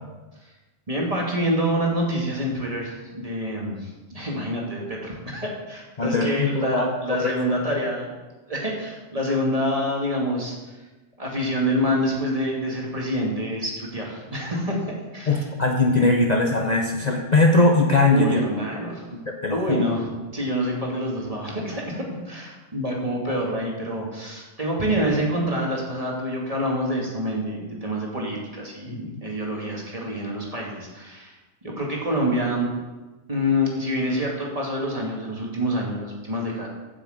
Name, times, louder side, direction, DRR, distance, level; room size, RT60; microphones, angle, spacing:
voice 1, 0.9-8.1 8.5-10.8 11.2-14.9 15.1-15.4 18.1-19.1 19.5-31.4 31.6-32.7 33.3-36.7, equal, 30° right, -2 dB, 2.2 m, -26 dB
voice 2, 6.0-6.9 7.2-7.3 15.3-18.4 19.1-19.9 28.9-29.0, left 2 dB, 40° left, 1 dB, 0.8 m, -20 dB
8.3 x 6.3 x 7.8 m, 1.2 s
omnidirectional pair, 1.2 m